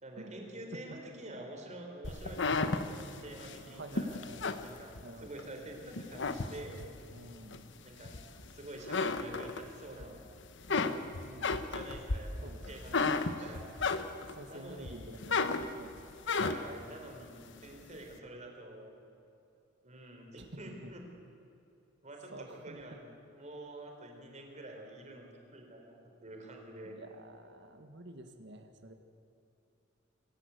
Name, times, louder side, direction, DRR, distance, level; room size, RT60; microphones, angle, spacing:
voice 1, 0.0-4.2 4.6-6.8 7.8-8.2 8.4-10.2 11.6-13.7 14.5-15.2 16.3-18.9 19.8-21.0 22.0-23.1 23.3-27.0, right 1 dB, 35° right, 2 dB, 4.0 m, -48 dB
sound 1, 2.0-5.5 5.9-7.0 7.5-8.5 8.8-10.1 10.4-14.4 14.8-16.8, left 4 dB, 65° left, 1.2 m, -33 dB
voice 2, 3.7-4.6 5.0-5.4 7.1-7.7 10.7-11.6 12.4-13.5 14.3-16.0 20.4-20.5 20.8-20.9 22.3-22.8 26.8-28.9, right 1 dB, 65° right, 7 dB, 1.8 m, -50 dB
26.5 x 14.5 x 8.3 m, 2.7 s
head